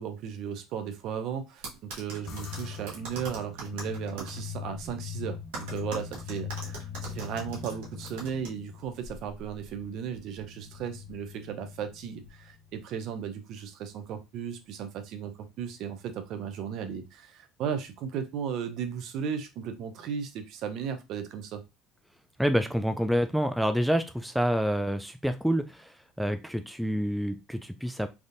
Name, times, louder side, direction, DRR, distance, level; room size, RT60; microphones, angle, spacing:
voice 1, 0.0-21.6, right 8 dB, 60° right, 0.6 m, -36 dB
sound 1, 1.6-4.4 5.5-8.5, right 4 dB, 85° right, 1.1 m, -40 dB
sound 2, 2.3-12.9, left 7 dB, 50° left, 0.7 m, -42 dB
voice 2, 22.4-28.1, equal, ahead, 0.3 m, -28 dB
3.4 x 2.6 x 2.5 m
supercardioid pair, 105°, 0 cm